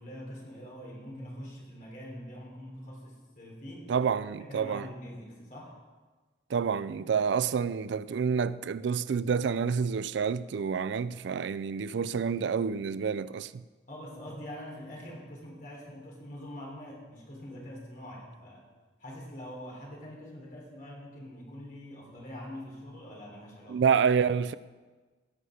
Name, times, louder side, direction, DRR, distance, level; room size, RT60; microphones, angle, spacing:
voice 1, 0.0-4.0 4.4-5.7 13.9-18.7 19.0-23.8, equal, 45° left, 3.6 m, -44 dB
voice 2, 3.9-4.9 6.5-13.6 23.7-24.5, right 6 dB, 75° right, 0.4 m, -28 dB
16.5 x 6.6 x 6.4 m
head